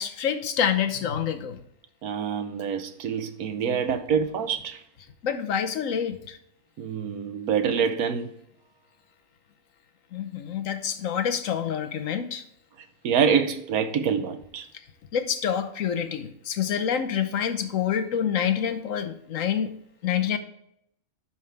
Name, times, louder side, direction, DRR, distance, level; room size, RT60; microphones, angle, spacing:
voice 1, 0.0-1.6 5.2-6.4 10.1-12.4 15.1-19.7 20.0-20.4, left 8 dB, 65° left, 1.2 m, -27 dB
voice 2, 2.0-4.8 6.8-8.3 13.0-14.7, right 7 dB, 80° right, 1.3 m, -26 dB
10.5 x 5.8 x 3.4 m
omnidirectional pair, 1.6 m